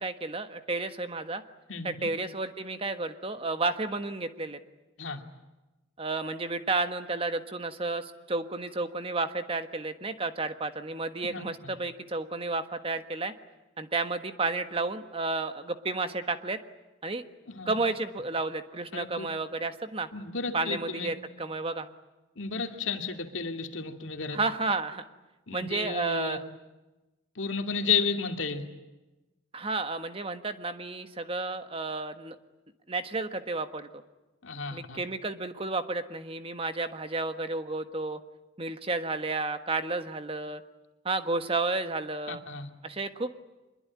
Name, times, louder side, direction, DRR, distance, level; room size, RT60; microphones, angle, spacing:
voice 1, 0.0-1.4 1.8-4.6 6.0-13.3 13.8-16.6 17.0-17.2 17.7-20.1 20.5-21.9 24.3-25.0 25.5-26.4 29.5-32.3 32.9-34.0 34.7-38.2 38.6-40.6 41.0-42.4 42.8-43.3, right 3 dB, 30° right, 9 dB, 1.4 m, -32 dB
voice 2, 1.7-2.1 5.0-5.2 11.3-11.7 17.5-17.7 18.9-19.3 20.1-21.1 22.4-24.4 25.5-26.4 27.3-28.6 34.4-35.0 42.3-42.7, left 5 dB, 75° left, 5 dB, 2.5 m, -32 dB
25.0 x 22.0 x 9.6 m, 1.1 s
head